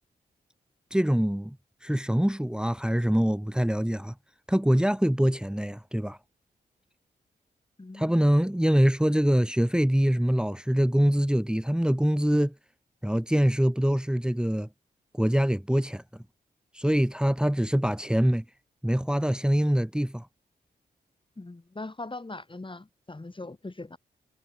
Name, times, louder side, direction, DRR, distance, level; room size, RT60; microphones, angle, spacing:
voice 1, 0.9-1.6 1.8-4.1 4.5-6.2 7.9-12.5 13.0-14.7 15.1-16.0 16.7-18.4 18.8-20.3, equal, 5° right, 2.1 m, -24 dB
voice 2, 7.8-8.1 21.4-24.0, left 2 dB, 30° left, 5.0 m, -40 dB
supercardioid pair, 45°, 18 cm